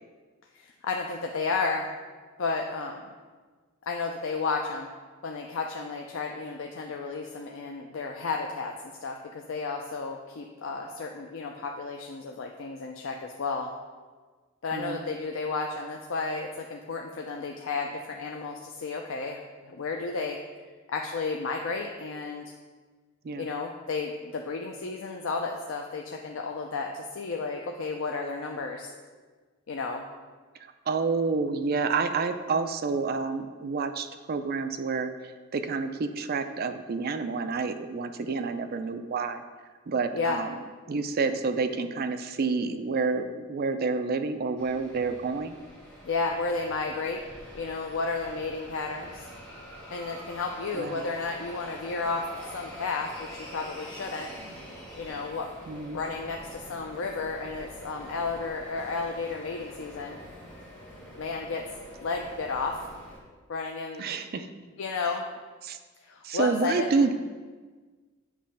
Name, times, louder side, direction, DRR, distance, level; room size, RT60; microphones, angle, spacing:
voice 1, 0.5-1.9 2.4-3.1 3.9-4.9 5.2-8.7 9.0-13.7 14.6-20.4 20.9-22.5 23.4-28.9 29.7-30.0 40.1-40.4 46.0-47.2 47.5-49.3 49.9-54.3 55.0-55.5 55.9-60.2 61.2-61.6 62.0-62.8 63.5-64.0 64.8-65.2 66.0-67.1, left 4 dB, 65° left, 2 dB, 0.5 m, -32 dB
voice 2, 14.7-15.0 23.2-23.5 30.9-35.1 35.5-39.4 39.9-40.6 40.9-45.6 50.8-51.0 55.7-56.0 64.0-64.5 65.6-65.8 66.2-67.1, right 4 dB, 50° right, 8 dB, 0.4 m, -29 dB
sound 1, 44.6-63.2, equal, 5° left, 1.6 m, -45 dB
8.4 x 3.1 x 5.6 m, 1.4 s
head